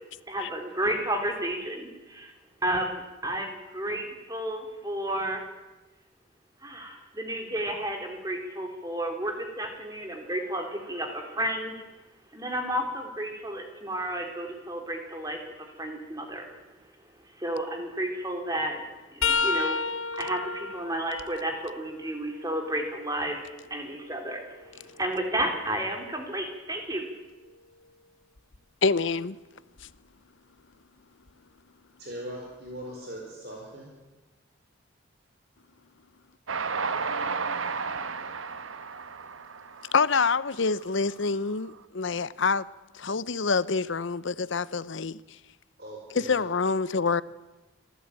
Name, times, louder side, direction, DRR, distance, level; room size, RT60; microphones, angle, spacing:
voice 1, 0.3-2.3 2.6-5.4 6.6-11.8 12.3-16.5 17.3-18.8 19.1-27.1, right 1 dB, 15° right, 3.4 m, -32 dB
sound 1, 19.2-23.0 23.5-25.5 28.4-28.6 29.8-30.0 31.3-31.4, left 5 dB, 85° left, 1.2 m, -33 dB
voice 2, 28.8-29.4 39.9-42.7 42.9-45.2 46.1-47.2, left 4 dB, 65° left, 0.7 m, -26 dB
voice 3, 32.0-33.9 45.8-46.4, right 1 dB, 50° right, 4.4 m, -40 dB
Train, 36.5-40.9, right 5 dB, 80° right, 1.2 m, -33 dB
25.5 x 14.5 x 9.0 m
head